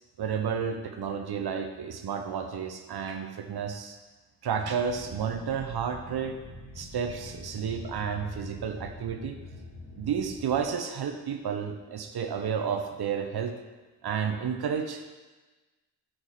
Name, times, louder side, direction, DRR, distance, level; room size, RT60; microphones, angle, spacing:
voice 1, 0.2-4.0 4.4-6.4 6.8-9.4 10.0-13.5 14.0-15.0, right 7 dB, 60° right, 6 dB, 0.8 m, -31 dB
sound 1, 4.5-10.6, left 2 dB, 60° left, 2.4 m, -45 dB
6.3 x 5.7 x 4.8 m, 1.2 s
supercardioid pair, 45°, 43 cm